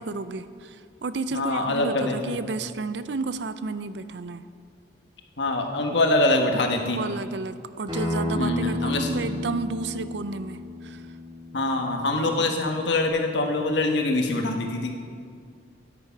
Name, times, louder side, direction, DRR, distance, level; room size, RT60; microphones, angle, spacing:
voice 1, 0.0-4.4 6.8-11.0, right 3 dB, 65° right, 13 dB, 0.5 m, -32 dB
voice 2, 1.3-2.4 5.4-7.0 8.3-9.1 11.5-14.9, left 2 dB, 70° left, 3 dB, 1.4 m, -24 dB
Acoustic guitar, 7.9-13.1, left 1 dB, 25° right, 3.2 m, -32 dB
13.0 x 9.8 x 5.8 m, 2.2 s
head